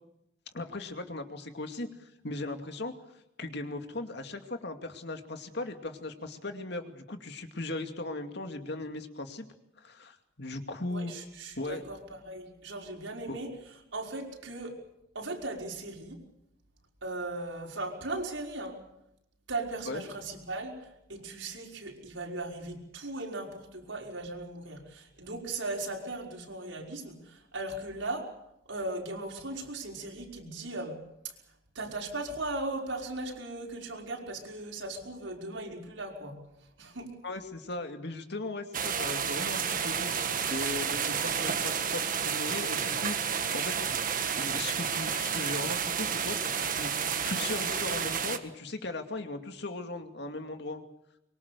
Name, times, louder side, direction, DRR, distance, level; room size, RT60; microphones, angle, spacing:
voice 1, 0.5-2.9 3.4-9.5 9.8-11.1 11.6-11.8 13.3-13.4 19.9-20.0 37.2-40.1 40.5-44.0 44.4-50.8, left 2 dB, 60° left, 6 dB, 2.5 m, -38 dB
voice 2, 10.9-13.5 13.9-14.8 15.1-16.2 17.0-18.8 19.5-28.3 28.7-31.3 31.7-36.4 36.8-37.2, right 2 dB, 80° right, 1 dB, 5.5 m, -38 dB
sound 1, 38.7-48.4, right 7 dB, 45° right, 1.7 m, -31 dB
24.5 x 23.0 x 6.8 m, 0.83 s
head